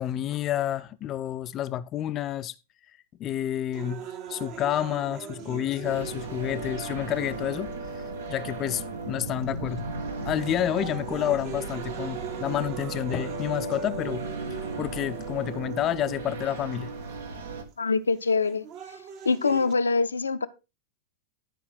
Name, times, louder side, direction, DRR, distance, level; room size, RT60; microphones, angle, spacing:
voice 1, 0.0-2.5 3.2-4.0 4.3-7.7 8.3-9.9 10.2-14.2 14.8-16.9, left 11 dB, 30° left, 0.5 m, -29 dB
sound 1, 3.7-7.7 8.5-8.6 9.4-9.7 10.2-15.7 16.7-16.8 18.2-19.7, right 7 dB, 40° right, 1.2 m, -41 dB
sound 2, 5.8-17.6, right 3 dB, 70° right, 1.4 m, -35 dB
voice 2, 17.8-18.6 19.2-20.5, left 4 dB, 75° left, 0.6 m, -24 dB
11.5 x 5.1 x 4.7 m
figure-of-eight pair, 90°, 0 cm